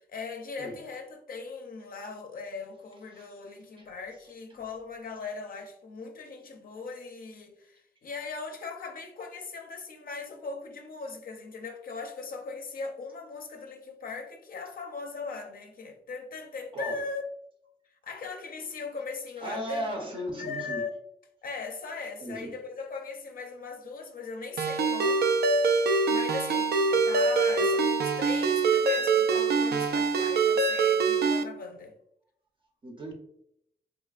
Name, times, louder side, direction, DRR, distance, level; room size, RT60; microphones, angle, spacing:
voice 1, 0.0-17.2 18.0-19.8 20.1-20.9 21.4-25.3 26.1-31.9, left 4 dB, 55° left, 0.5 m, -39 dB
voice 2, 19.4-20.8 22.2-22.5 32.8-33.1, equal, 30° right, 0.7 m, -36 dB
Ringtone, 24.6-31.4, right 4 dB, 65° right, 0.4 m, -24 dB
3.9 x 3.1 x 2.3 m
wide cardioid pair, 165°, 18 cm